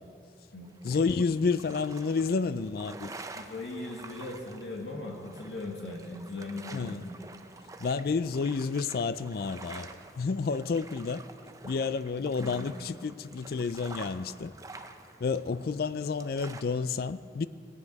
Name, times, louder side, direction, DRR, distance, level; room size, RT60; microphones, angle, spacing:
sound 1, 0.6-16.6, right 3 dB, 20° right, 0.5 m, -48 dB
voice 1, 0.8-3.1 6.7-7.0 7.8-11.2 11.6-14.5 15.2-17.5, left 4 dB, 55° left, 0.4 m, -30 dB
voice 2, 3.3-6.9 12.4-12.7, left 2 dB, 85° left, 1.6 m, -39 dB
17.0 x 9.9 x 5.3 m
head